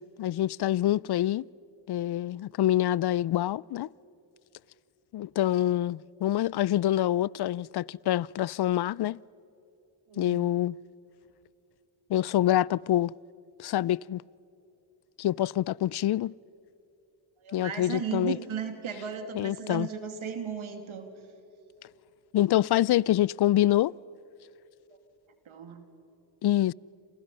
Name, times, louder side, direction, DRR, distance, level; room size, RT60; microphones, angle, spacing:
voice 1, 0.0-1.5 1.9-3.9 5.1-9.2 10.2-10.7 12.1-13.1 13.6-14.2 15.2-16.3 17.5-18.4 19.3-19.9 22.3-23.9 26.4-26.7, left 13 dB, 55° left, 0.5 m, -26 dB
voice 2, 10.1-10.5 17.4-21.1 25.5-25.8, right 7 dB, 75° right, 2.7 m, -35 dB
29.0 x 28.0 x 5.6 m
cardioid pair, 60°, 49 cm